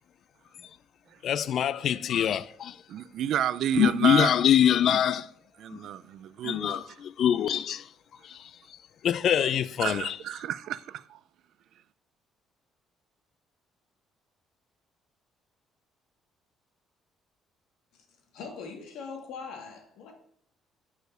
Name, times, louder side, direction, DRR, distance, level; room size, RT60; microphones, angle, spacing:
voice 1, 1.2-2.8 3.8-5.3 5.7-5.8 6.4-7.9 8.2-8.5 9.0-10.2, left 9 dB, 50° left, 0.3 m, -24 dB
voice 2, 2.9-4.4 5.6-6.8 9.8-11.2, right 11 dB, 60° right, 0.3 m, -31 dB
voice 3, 18.3-20.1, left 5 dB, 75° left, 1.7 m, -41 dB
6.4 x 5.0 x 6.6 m
cardioid pair, 160°, 0 cm